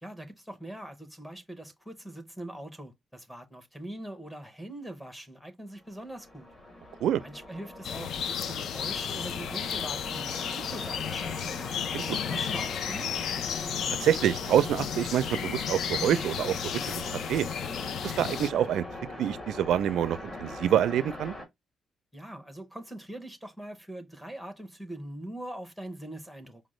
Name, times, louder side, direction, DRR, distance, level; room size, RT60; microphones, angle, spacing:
voice 1, 0.0-6.5 7.2-11.4 12.0-13.2 22.1-26.6, right 1 dB, 5° left, 0.7 m, -42 dB
sound 1, 5.9-21.5, left 1 dB, 20° left, 1.3 m, -41 dB
sound 2, 7.8-18.5, left 8 dB, 65° left, 0.3 m, -33 dB
voice 2, 14.0-17.0 17.3-17.5 18.0-18.8 19.2-21.3, right 10 dB, 80° right, 0.4 m, -26 dB
5.0 x 2.1 x 3.0 m
cardioid pair, 180°, 0 cm